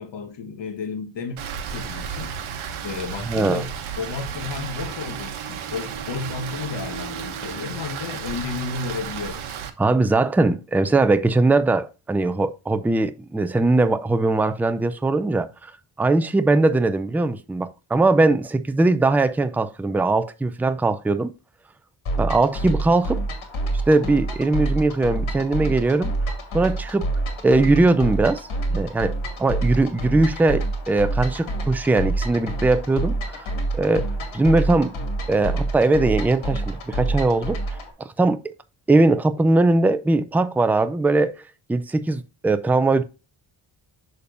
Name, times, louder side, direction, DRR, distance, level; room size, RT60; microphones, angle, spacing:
voice 1, 0.0-1.4 1.7-2.4 2.7-9.4, left 5 dB, 65° left, 1.4 m, -32 dB
Rain, 1.4-9.7, right 7 dB, 90° right, 1.1 m, -33 dB
voice 2, 3.3-3.6 9.8-15.7 16.0-21.3 22.2-23.2 23.9-26.1 26.5-27.1 27.4-29.1 29.4-33.5 33.7-34.1 34.3-34.9 35.3-37.6 38.2-38.4 38.9-41.3 41.7-43.0, right 2 dB, 5° right, 0.3 m, -20 dB
sound 1, 22.1-37.9, right 2 dB, 80° left, 2.4 m, -27 dB
6.9 x 6.5 x 2.5 m
wide cardioid pair, 135°, 47 cm